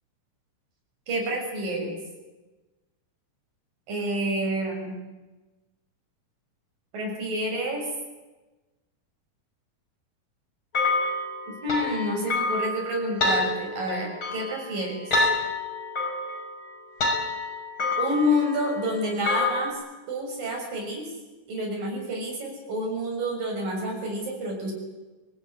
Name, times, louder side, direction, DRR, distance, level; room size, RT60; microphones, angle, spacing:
voice 1, 1.1-2.0 3.9-5.0 6.9-7.8 11.5-15.0 18.0-19.8 20.1-21.1 21.5-24.7, equal, 75° right, 1 dB, 8.1 m, -28 dB
sound 1, 10.7-19.7, left 2 dB, 35° left, 6.8 m, -28 dB
23.0 x 19.5 x 9.9 m, 1.1 s
omnidirectional pair, 3.9 m